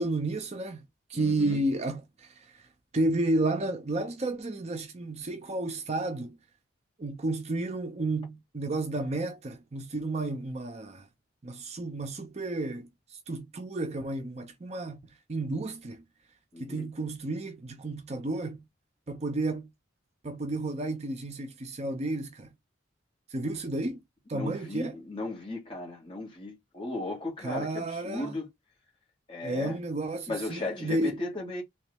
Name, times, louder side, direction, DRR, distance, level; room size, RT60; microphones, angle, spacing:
voice 1, 0.0-2.7 2.9-6.4 7.0-11.1 11.4-16.0 16.6-18.7 19.1-19.7 20.2-22.5 23.3-24.0 24.3-25.0 27.4-28.3 29.4-31.2, right 2 dB, 35° right, 0.5 m, -32 dB
voice 2, 1.1-1.6 16.5-16.9 24.3-28.5 29.3-29.8 30.3-31.6, left 2 dB, 25° left, 1.9 m, -36 dB
3.4 x 2.9 x 3.3 m
head